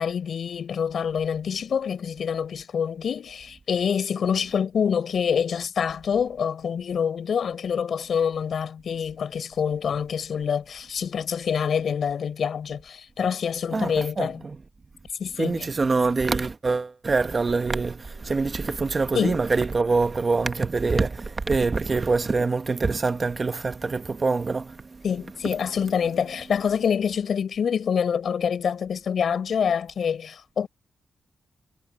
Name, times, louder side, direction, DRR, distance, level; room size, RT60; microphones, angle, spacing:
voice 1, 0.0-14.4 15.2-15.7 19.1-19.4 25.0-30.7, left 7 dB, 70° left, 4.5 m, -26 dB
voice 2, 13.7-14.6 15.4-25.0, right 4 dB, 40° right, 1.2 m, -25 dB
cardioid pair, 75°, 0 cm